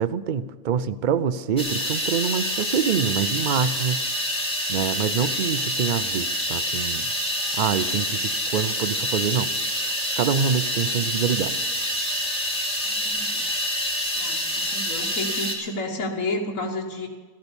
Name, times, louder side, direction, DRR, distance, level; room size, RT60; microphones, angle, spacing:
voice 1, 0.0-4.1 4.7-7.1 7.6-9.5 9.8-11.6, right 7 dB, 55° right, 15 dB, 0.5 m, -25 dB
sound 1, 1.6-15.5, equal, 5° left, 3.0 m, -27 dB
voice 2, 12.8-13.5 14.2-17.1, left 2 dB, 70° left, -2 dB, 1.6 m, -31 dB
15.5 x 12.0 x 7.1 m, 1.5 s
omnidirectional pair, 1.4 m